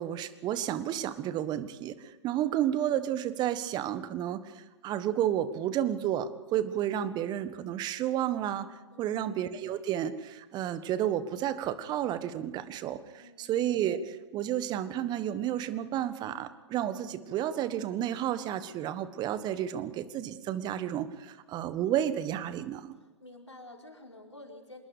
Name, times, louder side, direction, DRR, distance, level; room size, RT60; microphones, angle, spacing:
voice 1, 0.0-1.9 2.2-8.7 9.0-22.9, right 11 dB, 30° right, 13 dB, 1.5 m, -31 dB
voice 2, 8.9-9.3 13.2-13.5 22.9-24.8, left 2 dB, 90° left, 0 dB, 4.8 m, -50 dB
26.5 x 20.5 x 5.1 m, 1.1 s
figure-of-eight pair, 105°, 15 cm